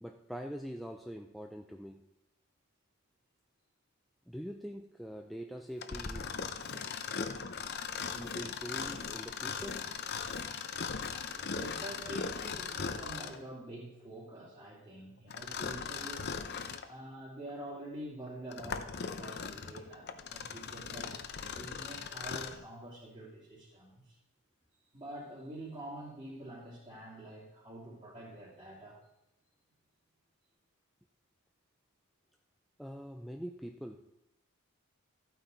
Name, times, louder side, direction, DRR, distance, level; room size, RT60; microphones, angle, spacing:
voice 1, 0.0-2.1 4.3-6.4 8.1-9.8 32.8-34.1, equal, ahead, 3 dB, 0.4 m, -44 dB
Mechanisms, 5.8-13.5 15.3-16.9 17.5-17.6 18.3-22.6, left 5 dB, 45° left, 0.7 m, -39 dB
voice 2, 11.4-16.4 16.8-21.1 21.5-24.2 24.9-29.0, right 1 dB, 25° right, -10 dB, 3.0 m, -46 dB
14.0 x 9.1 x 4.0 m, 0.91 s
head